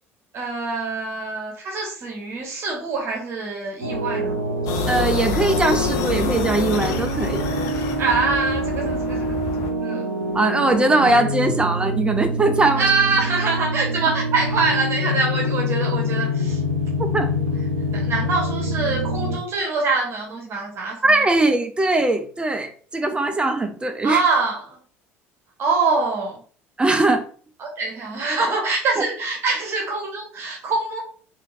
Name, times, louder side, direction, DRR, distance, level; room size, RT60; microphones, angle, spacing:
voice 1, 0.3-4.4 8.0-9.5 9.8-10.0 12.8-16.6 17.9-21.2 24.0-24.7 25.6-26.4 27.6-31.0, right 4 dB, 40° right, 1.0 m, -24 dB
sound 1, 3.8-19.4, equal, 80° right, 0.6 m, -25 dB
sound 2, 4.7-9.7, left 5 dB, 50° left, 0.5 m, -27 dB
voice 2, 4.9-7.4 10.3-12.8 17.1-17.3 21.0-24.2 26.8-27.3 29.0-29.1, right 2 dB, 15° right, 0.4 m, -20 dB
3.6 x 2.6 x 2.5 m
figure-of-eight pair, 60°, 7 cm